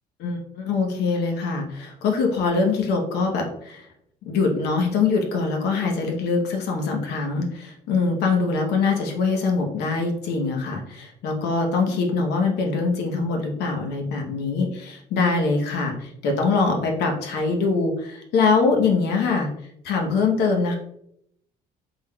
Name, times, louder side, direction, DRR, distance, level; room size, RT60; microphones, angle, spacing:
voice 1, 0.2-3.9 4.2-19.5 19.8-20.8, left 4 dB, 75° left, 2 dB, 0.9 m, -23 dB
3.6 x 3.6 x 2.2 m, 0.73 s
cardioid pair, 110°, 17 cm